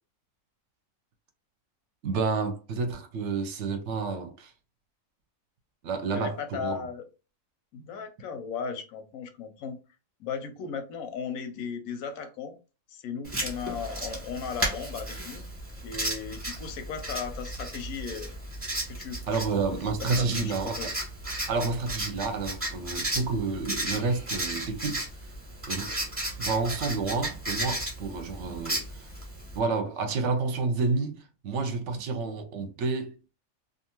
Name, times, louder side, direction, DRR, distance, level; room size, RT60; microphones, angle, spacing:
voice 1, 2.0-4.5 5.8-6.8 19.3-20.9 21.5-25.0 25.7-25.9 26.4-28.8 29.5-33.3, right 4 dB, 65° right, 0.8 m, -30 dB
voice 2, 6.1-7.1 7.7-9.8 10.2-12.6 12.9-15.4 15.8-18.3 18.9-19.4 19.7-21.0, left 6 dB, 90° left, 1.1 m, -36 dB
Writing, 13.2-29.6, right 1 dB, 10° right, 0.9 m, -34 dB
2.6 x 2.4 x 2.9 m
omnidirectional pair, 1.4 m